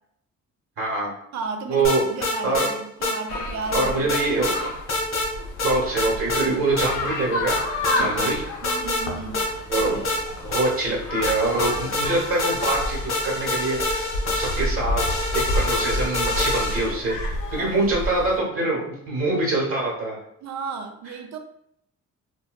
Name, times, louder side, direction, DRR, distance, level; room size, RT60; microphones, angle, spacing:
voice 1, 0.8-1.1 1.7-2.0 2.4-2.6 3.7-4.7 5.6-7.6 7.9-8.4 9.7-10.0 10.4-14.1 14.3-15.0 15.3-20.1, right 2 dB, 50° right, -2 dB, 1.1 m, -24 dB
voice 2, 1.3-4.1 7.9-8.4 8.6-9.5 17.5-18.0 20.4-21.4, right 4 dB, 65° right, 6 dB, 0.5 m, -34 dB
sound 1, 1.8-2.7 3.0-3.2 3.7-4.6 4.9-5.3 5.6-6.5 6.8-6.9 7.5-8.3 8.6-9.0 9.3-10.9 11.2-17.0, left 2 dB, 40° left, 0.9 m, -26 dB
sound 2, 3.3-18.4, left 1 dB, 80° left, 0.6 m, -31 dB
2.7 x 2.2 x 2.2 m, 0.73 s
cardioid pair, 90°, 30 cm